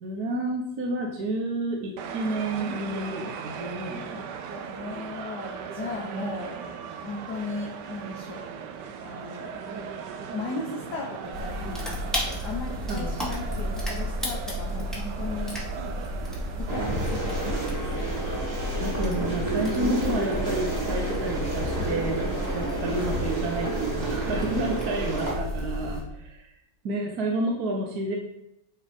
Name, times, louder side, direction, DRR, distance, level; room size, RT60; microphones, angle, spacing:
voice 1, 0.0-4.3 12.9-13.1 18.8-22.3 22.5-26.5 26.8-28.2, right 2 dB, 60° right, 0 dB, 1.6 m, -30 dB
sound 1, 2.0-17.6, right 6 dB, 75° right, 1.4 m, -38 dB
voice 2, 4.5-6.6 6.9-8.5 9.0-9.6 10.3-15.6 16.6-18.2, left 2 dB, 70° left, -2 dB, 1.9 m, -36 dB
sound 2, 11.3-26.0, left 1 dB, ahead, 2.1 m, -32 dB
sound 3, 16.7-25.3, right 2 dB, 35° right, 2.6 m, -30 dB
9.6 x 4.8 x 5.3 m, 0.83 s
omnidirectional pair, 1.9 m